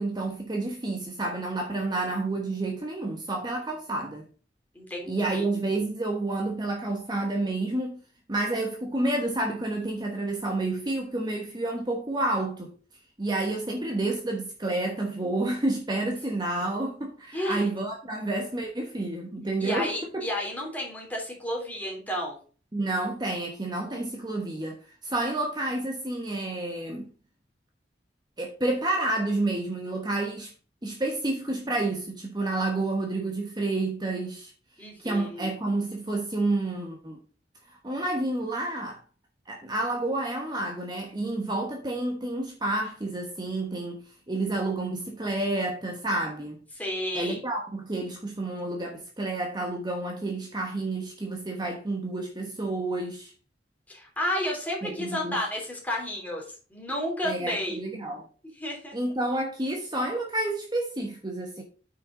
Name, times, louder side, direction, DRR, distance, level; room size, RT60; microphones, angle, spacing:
voice 1, 0.0-4.3 5.1-8.0 8.3-12.7 13.2-20.2 22.7-24.8 25.0-27.1 28.4-30.5 30.8-34.5 34.8-37.2 37.8-39.0 39.5-46.6 47.1-53.3 54.8-55.3 57.2-58.3 58.9-61.6, right 2 dB, 25° right, 1.2 m, -30 dB
voice 2, 4.7-5.5 17.3-17.7 19.6-22.3 34.8-35.5 46.8-47.4 53.9-56.4 56.7-57.8 58.6-58.9, left 1 dB, 10° left, 3.3 m, -31 dB
9.1 x 5.9 x 3.8 m
head